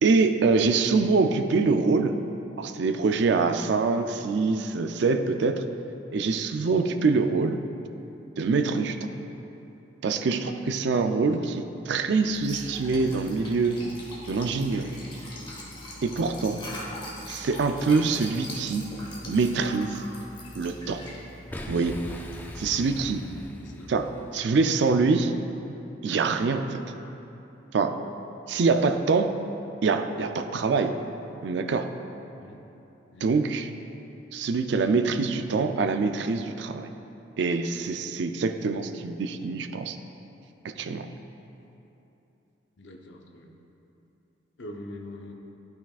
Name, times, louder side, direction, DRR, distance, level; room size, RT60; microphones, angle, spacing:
voice 1, 0.0-2.2 2.6-5.6 6.1-7.6 8.4-9.1 10.0-13.8 14.3-14.9 16.0-16.6 17.3-18.9 19.3-20.0 20.6-21.0 21.7-22.0 22.6-23.2 23.9-25.3 26.0-26.8 27.7-28.0 28.5-29.3 29.8-30.9 31.4-31.9 33.2-33.7 34.3-36.9 37.4-40.0 40.8-41.1, right 4 dB, 65° right, 7 dB, 0.4 m, -24 dB
voice 2, 11.2-11.5 23.6-23.9 32.4-32.6 33.1-33.3 42.8-43.5 44.6-45.3, left 1 dB, 70° left, 2 dB, 0.7 m, -43 dB
Liquid, 12.2-23.4, left 1 dB, 25° left, 1.3 m, -41 dB
Boom, 21.5-24.5, left 1 dB, 10° left, 0.4 m, -40 dB
12.0 x 5.8 x 2.4 m, 2.9 s
head